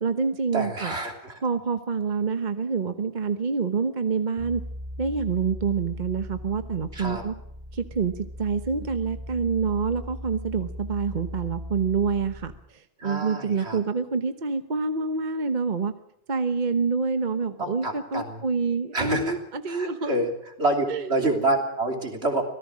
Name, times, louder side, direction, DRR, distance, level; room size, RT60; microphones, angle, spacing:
voice 1, 0.0-0.9 1.4-4.6 5.0-7.3 7.7-8.1 8.4-15.9 16.3-20.1 20.9-21.1, right 5 dB, 45° right, 8 dB, 1.2 m, -27 dB
voice 2, 0.5-1.4 6.9-7.2 13.0-13.8 17.6-18.4 18.9-19.4 19.7-20.3 20.6-22.4, right 2 dB, 80° right, 3 dB, 3.5 m, -27 dB
sound 1, 4.4-12.6, equal, 25° right, 8.0 m, -38 dB
25.0 x 18.0 x 6.2 m, 0.75 s
omnidirectional pair, 1.1 m